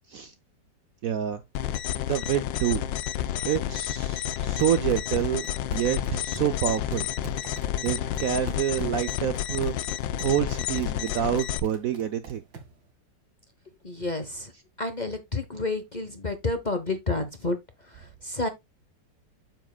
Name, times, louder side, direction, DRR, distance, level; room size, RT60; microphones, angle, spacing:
voice 1, 1.0-1.4 2.1-2.8 3.4-7.1 7.8-9.7 10.2-12.4, right 10 dB, 65° right, 0.9 m, -27 dB
sound 1, 1.5-11.6, left 11 dB, 80° left, 1.4 m, -30 dB
sound 2, 4.4-12.8, right 4 dB, 80° right, 2.6 m, -45 dB
voice 2, 13.8-14.5 14.8-18.5, left 2 dB, 30° left, 0.9 m, -30 dB
9.1 x 7.3 x 2.3 m
omnidirectional pair, 2.0 m